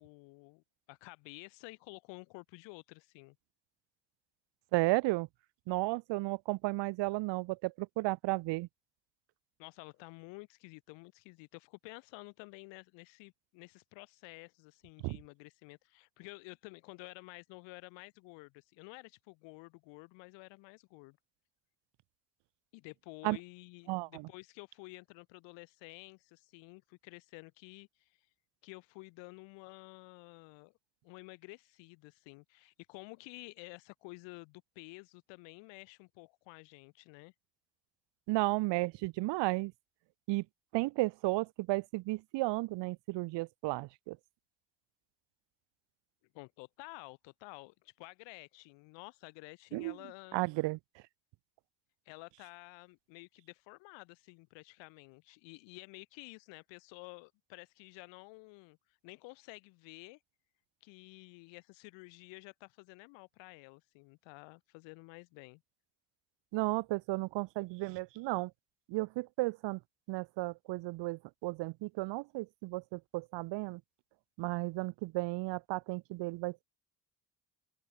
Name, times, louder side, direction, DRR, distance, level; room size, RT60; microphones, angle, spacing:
voice 1, 0.0-3.4 9.6-21.2 22.7-28.2 28.6-30.7 31.0-37.3 46.3-50.4 52.1-58.8 59.0-60.2 60.8-65.6, left 27 dB, 85° left, 4.5 m, -51 dB
voice 2, 4.7-5.3 5.7-8.7 15.0-15.2 23.2-23.4 23.9-24.3 38.3-39.7 40.3-40.4 40.7-44.2 49.7-50.0 50.3-50.8 66.5-68.5 68.9-69.8 70.1-73.8 74.4-76.6, right 21 dB, 75° right, 1.1 m, -33 dB
supercardioid pair, 65°, 43 cm